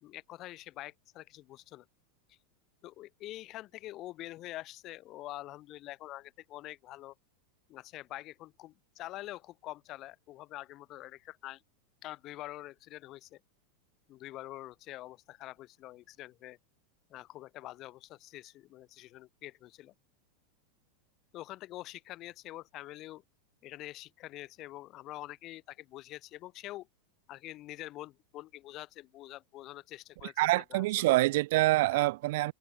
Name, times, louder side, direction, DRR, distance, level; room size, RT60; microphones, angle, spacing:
voice 1, 0.0-1.9 2.3-2.4 2.8-7.1 7.7-11.6 12.0-13.4 14.1-16.6 17.1-19.9 21.3-23.2 23.6-26.9 27.3-31.1 31.9-32.1, left 16 dB, 30° left, 1.3 m, -46 dB
voice 2, 30.4-32.5, right 19 dB, 55° right, 0.5 m, -26 dB
supercardioid pair, 170°, 0 cm